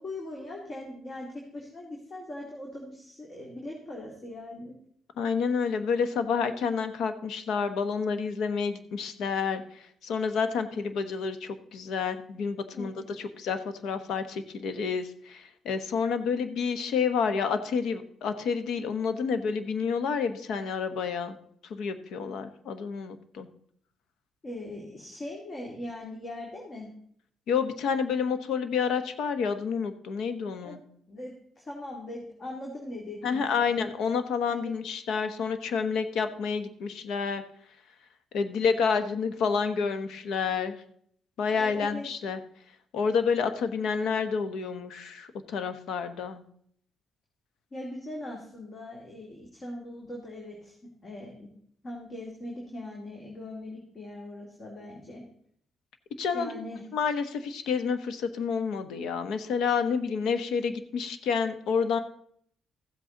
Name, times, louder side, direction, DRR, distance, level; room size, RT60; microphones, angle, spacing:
voice 1, 0.0-4.8 12.7-13.1 24.4-26.9 30.6-30.8 31.1-33.8 34.5-34.7 41.5-42.0 47.7-50.7 51.0-51.5 51.8-55.2 56.3-56.9, left 1 dB, 40° left, -1 dB, 2.4 m, -40 dB
voice 2, 5.2-9.6 10.0-21.4 21.7-23.5 27.5-30.8 33.2-37.4 38.3-40.8 41.4-42.4 42.9-46.4 56.2-56.5 56.9-62.0, left 6 dB, 80° left, 10 dB, 1.0 m, -29 dB
14.5 x 7.9 x 3.8 m, 0.66 s
cardioid pair, 90°, 0 cm